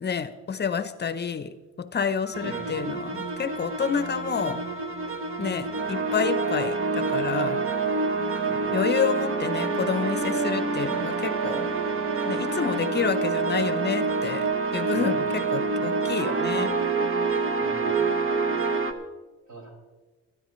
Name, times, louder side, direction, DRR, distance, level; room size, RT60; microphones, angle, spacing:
voice 1, 0.0-4.6 5.4-7.6 8.5-11.7 12.2-16.8, left 6 dB, 35° left, 13 dB, 0.7 m, -29 dB
sound 1, 2.2-6.3, left 2 dB, ahead, 1.5 m, -43 dB
sound 2, 2.3-18.9, right 4 dB, 45° right, 1.1 m, -27 dB
voice 2, 14.9-15.3 17.5-18.2 19.5-19.7, right 3 dB, 65° right, -1 dB, 5.1 m, -42 dB
24.5 x 10.0 x 3.1 m, 1.3 s
cardioid pair, 90°, 30 cm